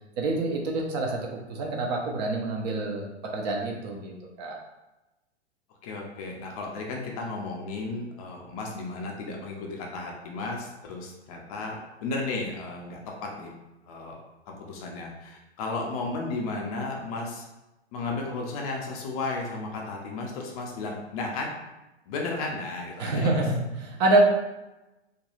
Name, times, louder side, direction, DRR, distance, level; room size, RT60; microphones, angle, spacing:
voice 1, 0.2-1.2 1.5-3.0 3.3-4.1 4.4-4.6 23.0-24.2, right 2 dB, 40° right, 0 dB, 0.5 m, -26 dB
voice 2, 5.8-13.5 13.9-14.2 14.6-17.5 17.9-21.5 22.1-23.4, left 3 dB, 35° left, 0 dB, 0.5 m, -34 dB
2.4 x 2.2 x 3.0 m, 1.0 s
figure-of-eight pair, 110°, 34 cm